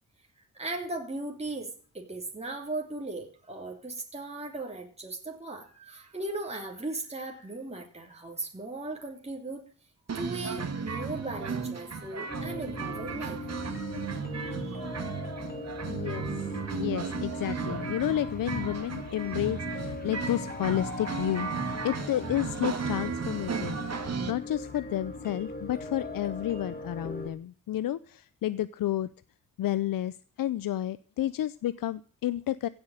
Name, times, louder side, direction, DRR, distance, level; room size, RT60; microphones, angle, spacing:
voice 1, 0.5-1.7 1.9-9.7 10.1-13.4 14.3-14.9, right 2 dB, 20° right, 1 dB, 3.2 m, -37 dB
sound 1, 10.1-24.3, right 5 dB, 50° right, 2.6 m, -35 dB
sound 2, 12.3-27.3, left 2 dB, 30° left, 2.5 m, -40 dB
voice 2, 15.9-21.5 21.8-29.1 29.6-32.7, left 12 dB, 85° left, 16 dB, 0.7 m, -31 dB
16.5 x 8.0 x 9.0 m, 0.41 s
cardioid pair, 80°, 33 cm